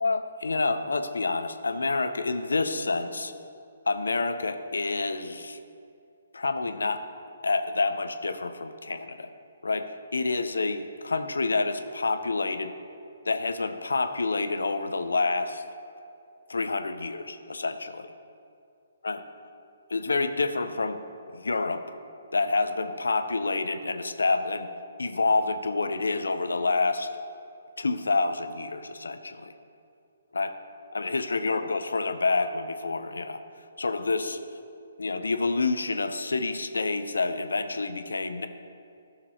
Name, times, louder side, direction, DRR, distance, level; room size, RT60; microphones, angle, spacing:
voice 1, 0.0-3.3 3.9-5.6 6.3-7.0 7.4-9.3 9.6-12.7 13.3-15.6 16.5-18.1 19.0-19.2 19.9-21.0 21.3-21.8 22.3-24.7 25.0-27.1 27.8-29.5 30.3-30.5 30.9-33.4 33.8-34.4 35.0-38.5, left 3 dB, 85° left, 10 dB, 0.5 m, -28 dB
11.5 x 6.7 x 2.8 m, 2.5 s
hypercardioid pair, 145°, 0 cm